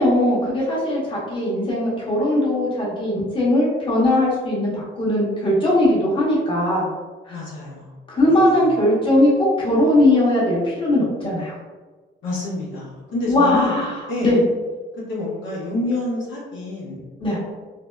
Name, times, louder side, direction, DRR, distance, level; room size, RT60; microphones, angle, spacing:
voice 1, 0.0-6.9 7.3-7.4 8.1-11.5 13.3-13.9 14.2-14.4 17.2-17.4, left 1 dB, 25° left, -7 dB, 1.0 m, -19 dB
voice 2, 7.3-8.0 8.3-8.6 12.2-13.8 14.1-14.3 15.0-17.0, left 2 dB, 75° left, -6 dB, 0.8 m, -28 dB
2.7 x 2.0 x 2.2 m, 1.3 s
cardioid pair, 90°, 20 cm